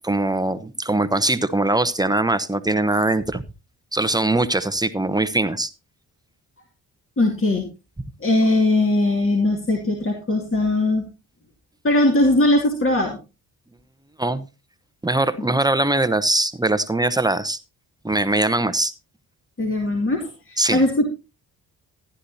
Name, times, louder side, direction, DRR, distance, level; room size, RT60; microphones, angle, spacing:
voice 1, 0.0-3.4 3.9-5.7 14.2-14.4 15.0-17.6 18.0-18.9 20.6-20.8, right 2 dB, 10° right, 11 dB, 1.0 m, -21 dB
voice 2, 7.2-7.7 8.2-11.1 11.8-13.2 19.6-21.1, left 2 dB, 30° left, 1 dB, 2.5 m, -20 dB
15.0 x 10.5 x 2.8 m, 0.29 s
supercardioid pair, 60°, 40 cm